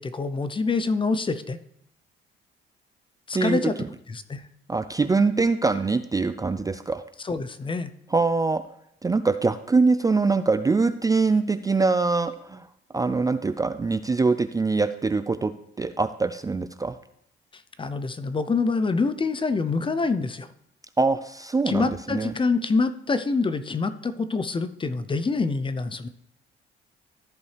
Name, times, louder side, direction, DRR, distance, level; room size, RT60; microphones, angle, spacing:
voice 1, 0.0-1.6 3.3-3.8 4.1-4.4 7.2-7.9 17.8-20.5 21.7-26.1, left 4 dB, 25° left, 13 dB, 0.6 m, -26 dB
voice 2, 3.3-3.9 4.7-7.0 8.1-8.6 9.0-12.6 12.9-15.5 15.8-17.0 21.0-22.3, right 4 dB, 20° right, 11 dB, 0.4 m, -23 dB
13.5 x 5.4 x 3.3 m, 0.72 s
cardioid pair, 90°, 20 cm